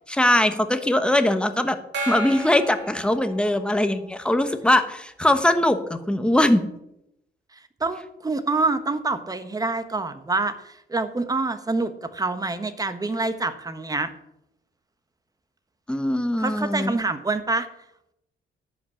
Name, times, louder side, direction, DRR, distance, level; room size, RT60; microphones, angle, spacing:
voice 1, 0.1-1.8 2.1-6.6 15.9-16.9, left 1 dB, 5° left, 9 dB, 1.2 m, -21 dB
Gong, 1.9-4.0, right 1 dB, 60° right, 3.2 m, -33 dB
voice 2, 7.5-14.1 16.4-17.7, right 3 dB, 20° right, 10 dB, 1.2 m, -26 dB
11.0 x 5.5 x 8.4 m, 0.81 s
cardioid pair, 90°, 20 cm